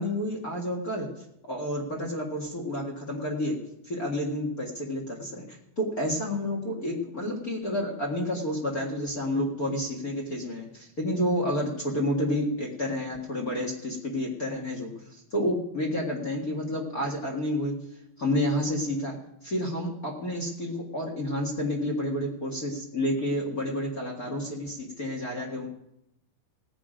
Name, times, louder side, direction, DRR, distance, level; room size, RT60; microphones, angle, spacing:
voice 1, 0.0-3.6 3.8-17.8 18.2-19.2 19.4-25.7, left 1 dB, 35° left, -1 dB, 1.6 m, -30 dB
18.0 x 8.5 x 5.1 m, 0.81 s
omnidirectional pair, 3.8 m